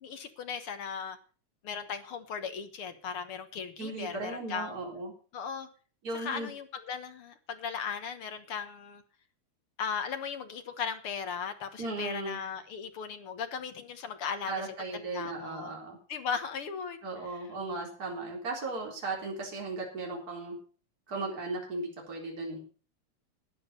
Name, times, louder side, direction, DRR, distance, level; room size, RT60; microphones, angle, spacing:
voice 1, 0.0-1.2 1.6-4.8 5.3-5.7 6.1-9.0 9.8-14.5 14.9-15.7 16.1-17.0 17.3-17.4, left 6 dB, 55° left, 8 dB, 1.9 m, -37 dB
voice 2, 3.8-5.1 6.0-6.5 11.8-12.4 14.5-16.0 17.0-20.5 21.1-22.6, right 3 dB, 30° right, 0 dB, 4.3 m, -36 dB
12.5 x 9.5 x 6.7 m, 0.39 s
omnidirectional pair, 3.4 m